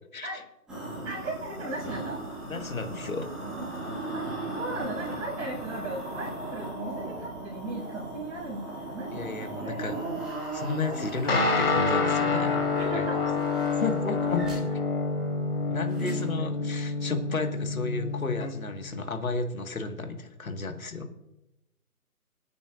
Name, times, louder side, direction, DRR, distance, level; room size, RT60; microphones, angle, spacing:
sound 1, 0.7-14.6 15.9-16.3 16.8-16.9, right 2 dB, ahead, 1.4 m, -38 dB
voice 1, 1.0-2.2 4.1-10.0 12.7-13.3 16.0-16.7, right 2 dB, 20° right, -11 dB, 5.2 m, -37 dB
voice 2, 2.5-3.3 9.1-9.9 10.5-12.6 12.9-13.0 13.8-14.5 15.7-21.1, left 3 dB, 65° left, 6 dB, 1.8 m, -33 dB
Guitar, 11.3-19.0, left 3 dB, 40° left, 1.6 m, -28 dB
24.5 x 8.9 x 2.5 m, 0.90 s
figure-of-eight pair, 155°, 45 cm